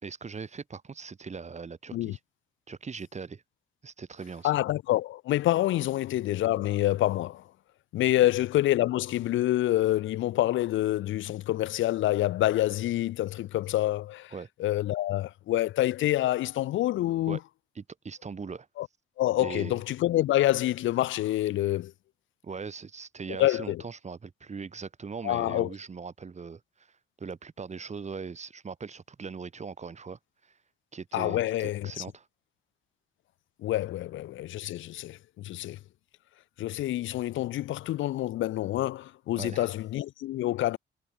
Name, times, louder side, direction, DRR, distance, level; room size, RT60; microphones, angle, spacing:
voice 1, 0.0-2.2 2.7-3.4 3.8-4.5 14.3-14.5 17.3-17.4 17.8-18.7 19.4-19.7 22.4-26.9 27.2-30.5 30.9-32.3 39.3-39.7, right 5 dB, 35° right, 3.8 m, -40 dB
voice 2, 4.4-7.4 7.9-14.3 14.6-17.4 18.8-18.9 19.2-21.9 23.3-23.8 25.2-25.7 31.1-32.0 33.6-35.8 36.6-40.8, left 14 dB, 75° left, 0.7 m, -27 dB
cardioid pair, 90°, 20 cm